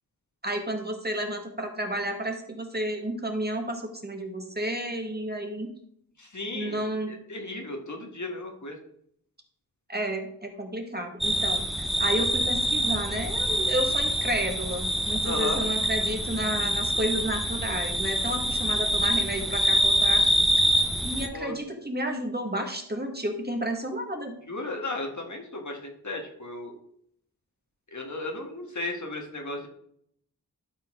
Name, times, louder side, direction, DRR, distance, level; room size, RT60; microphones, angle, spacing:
voice 1, 0.4-5.7 6.5-7.1 9.9-11.7 12.0-20.2 21.0-24.4, right 1 dB, 25° right, 3 dB, 1.7 m, -31 dB
voice 2, 6.2-8.8 15.2-15.6 21.3-21.6 24.5-26.8 27.9-29.7, left 2 dB, 50° left, 2 dB, 1.8 m, -35 dB
sound 1, 11.2-21.3, equal, ahead, 1.1 m, -25 dB
12.0 x 4.5 x 3.7 m, 0.68 s
cardioid pair, 45°, 38 cm